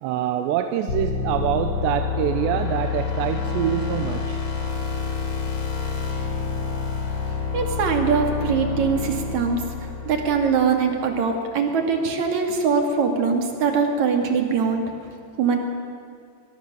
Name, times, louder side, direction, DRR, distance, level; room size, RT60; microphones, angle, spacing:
voice 1, 0.0-4.4, right 11 dB, 85° right, 7 dB, 3.0 m, -25 dB
sound 1, 0.9-10.7, left 5 dB, 45° left, 3.7 m, -28 dB
voice 2, 7.5-9.7 10.1-14.9 15.4-15.6, right 5 dB, 50° right, 3 dB, 3.0 m, -22 dB
23.0 x 22.0 x 6.8 m, 2.3 s
omnidirectional pair, 5.1 m